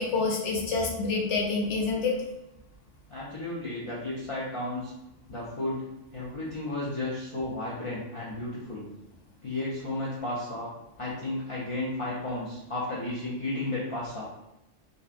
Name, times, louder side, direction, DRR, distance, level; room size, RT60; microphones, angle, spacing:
voice 1, 0.0-2.2, left 4 dB, 75° left, -1 dB, 0.9 m, -27 dB
voice 2, 3.1-4.9 5.3-5.8 6.1-8.9 9.4-10.7 11.0-14.2, left 2 dB, 55° left, -8 dB, 0.3 m, -33 dB
2.7 x 2.2 x 2.4 m, 0.91 s
omnidirectional pair, 1.3 m